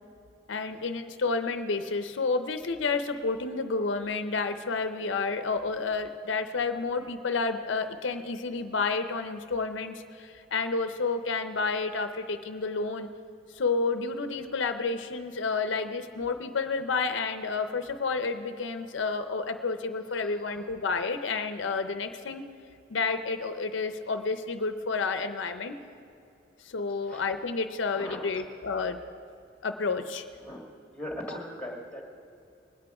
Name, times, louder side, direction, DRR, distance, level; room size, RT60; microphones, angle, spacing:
voice 1, 0.5-13.1 13.5-22.4 22.9-25.8 26.6-29.0 29.6-30.2, left 4 dB, 75° left, 9 dB, 0.6 m, -30 dB
voice 2, 20.1-20.7 27.0-27.2 27.9-28.4 30.4-30.6 30.9-32.0, equal, 5° left, 1 dB, 1.7 m, -40 dB
20.5 x 8.5 x 4.8 m, 2.6 s
head